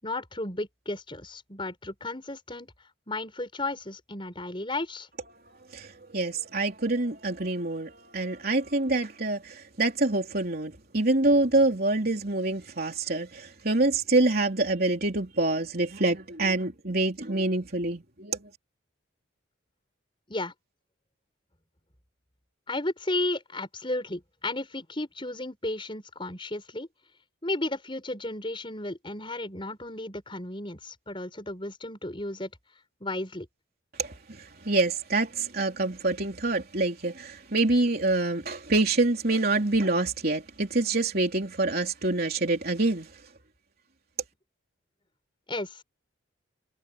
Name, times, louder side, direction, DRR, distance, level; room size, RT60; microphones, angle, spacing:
voice 1, 0.0-2.7 3.1-5.1 20.3-20.5 22.7-26.9 27.4-32.5 33.0-33.5 45.5-45.8, left 2 dB, 25° left, 5.9 m, -33 dB
voice 2, 5.7-18.4 34.0-43.2, right 2 dB, 50° right, 3.5 m, -26 dB
head